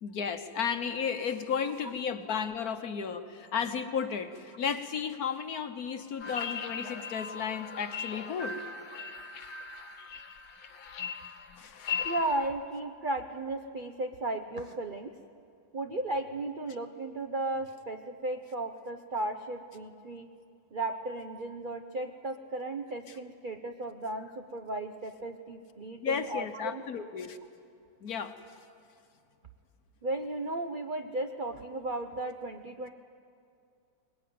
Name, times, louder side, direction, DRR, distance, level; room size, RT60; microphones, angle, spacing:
voice 1, 0.0-8.6 11.6-11.9 26.0-27.4 28.0-28.3, left 7 dB, 55° left, 8 dB, 1.3 m, -33 dB
sound 1, 6.2-12.5, left 6 dB, 85° left, 2.3 m, -38 dB
voice 2, 12.0-15.1 15.7-20.3 20.7-26.8 30.0-32.9, right 2 dB, 70° right, 6 dB, 0.4 m, -35 dB
22.5 x 20.5 x 9.4 m, 2.5 s
omnidirectional pair, 2.2 m